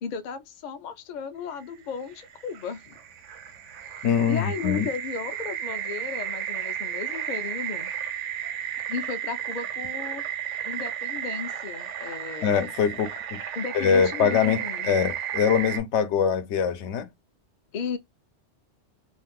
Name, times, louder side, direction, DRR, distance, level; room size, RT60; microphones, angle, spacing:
voice 1, 0.0-3.0 4.3-7.9 8.9-10.2 10.6-12.5 13.6-14.9 17.7-18.0, left 6 dB, 55° left, 0.5 m, -35 dB
sound 1, 1.8-15.8, right 10 dB, 80° right, 1.0 m, -33 dB
voice 2, 4.0-4.9 12.4-13.4 13.7-17.1, left 7 dB, 80° left, 0.9 m, -23 dB
2.5 x 2.3 x 3.4 m
omnidirectional pair, 1.2 m